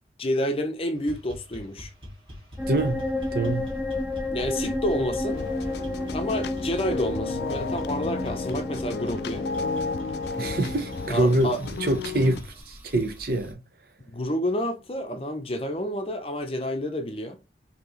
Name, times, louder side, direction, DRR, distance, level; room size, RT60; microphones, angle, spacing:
voice 1, 0.2-1.9 4.3-5.4 6.1-9.5 11.1-11.6 12.2-12.4 14.1-17.4, left 1 dB, 30° left, 0.6 m, -29 dB
sound 1, 0.9-12.6, left 1 dB, 30° right, 1.8 m, -43 dB
sound 2, 2.6-13.5, left 1 dB, 10° right, 0.5 m, -32 dB
voice 2, 2.7-3.0 3.3-3.7 10.4-11.5 11.8-13.6, right 1 dB, 55° right, 0.7 m, -25 dB
sound 3, 5.3-12.4, left 5 dB, 70° left, 0.4 m, -33 dB
4.7 x 2.9 x 3.1 m
head